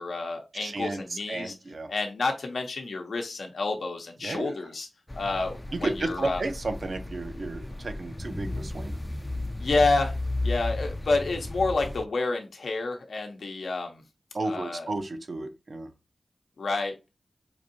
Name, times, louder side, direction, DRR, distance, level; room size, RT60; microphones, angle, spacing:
voice 1, 0.0-1.5 1.9-4.9 5.1-6.4 9.6-10.1 10.4-14.0 14.4-14.9 16.6-16.9, left 3 dB, 85° left, 0.7 m, -29 dB
voice 2, 0.6-1.9 4.2-4.5 5.7-8.9 14.3-15.9, right 2 dB, 65° right, 0.6 m, -33 dB
sound 1, 5.1-12.1, left 2 dB, 20° left, 0.4 m, -34 dB
4.7 x 2.6 x 2.6 m
cardioid pair, 55°, 0 cm